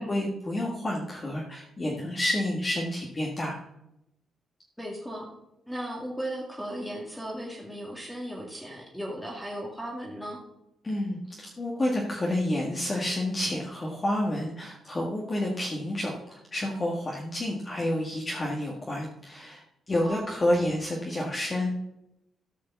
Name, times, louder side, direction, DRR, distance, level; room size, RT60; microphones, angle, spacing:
voice 1, 0.0-3.6 10.8-19.6 19.9-21.7, left 1 dB, 30° left, -2 dB, 1.7 m, -29 dB
voice 2, 4.8-5.3 5.7-10.4 20.0-20.3, equal, 5° left, -2 dB, 2.1 m, -36 dB
13.5 x 5.1 x 7.0 m, 0.86 s
cardioid pair, 110°, 0 cm